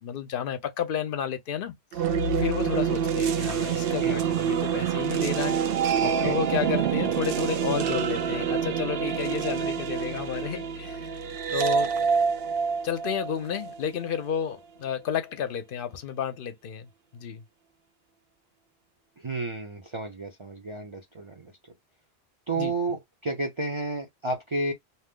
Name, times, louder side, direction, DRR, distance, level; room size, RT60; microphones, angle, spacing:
voice 1, 0.0-5.6 6.2-11.1 11.5-12.0 12.8-17.4 22.6-22.7, left 8 dB, 60° left, 0.8 m, -32 dB
sound 1, 1.9-14.1, right 7 dB, 65° right, 0.7 m, -27 dB
voice 2, 6.0-6.4 19.2-21.5 22.5-24.7, right 2 dB, 35° right, 0.6 m, -31 dB
2.8 x 2.0 x 3.5 m
omnidirectional pair, 1.1 m